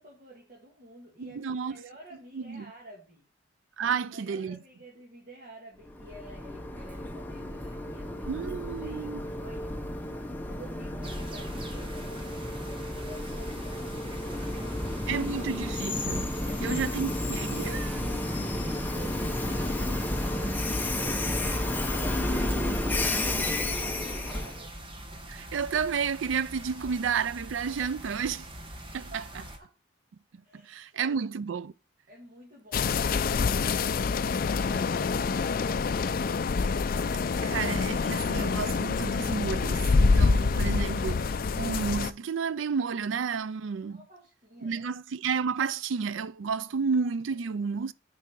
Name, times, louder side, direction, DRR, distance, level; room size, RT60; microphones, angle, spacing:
voice 1, 0.0-3.3 3.8-9.8 10.5-15.5 16.4-16.9 17.2-17.3 17.5-22.7 23.1-24.8 29.1-29.7 30.4-30.7 31.1-31.3 32.1-36.4 43.9-44.9, right 1 dB, 45° right, 1.9 m, -50 dB
voice 2, 1.2-1.8 2.3-2.7 3.8-4.6 8.3-9.2 15.1-16.3 16.6-17.8 25.3-28.5 28.9-29.2 30.5-31.7 37.4-44.0 44.6-47.9, right 6 dB, 80° right, 0.4 m, -31 dB
Train, 5.9-24.6, left 1 dB, 10° left, 0.8 m, -32 dB
sound 1, 11.0-29.6, right 1 dB, 25° right, 1.1 m, -44 dB
sound 2, 32.7-42.1, left 4 dB, 50° left, 0.4 m, -26 dB
9.1 x 4.6 x 4.5 m
head